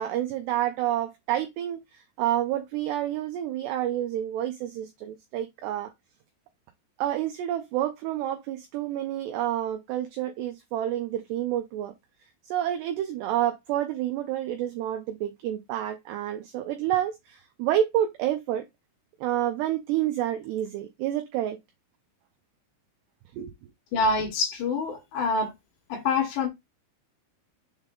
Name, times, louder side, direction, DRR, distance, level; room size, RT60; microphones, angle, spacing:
voice 1, 0.0-5.9 7.0-11.9 12.4-18.6 19.2-21.6 23.3-23.5, right 12 dB, 85° right, 2.4 m, -29 dB
voice 2, 23.9-25.5 25.9-26.5, left 3 dB, 70° left, 3.0 m, -26 dB
7.2 x 3.6 x 3.7 m
omnidirectional pair, 5.7 m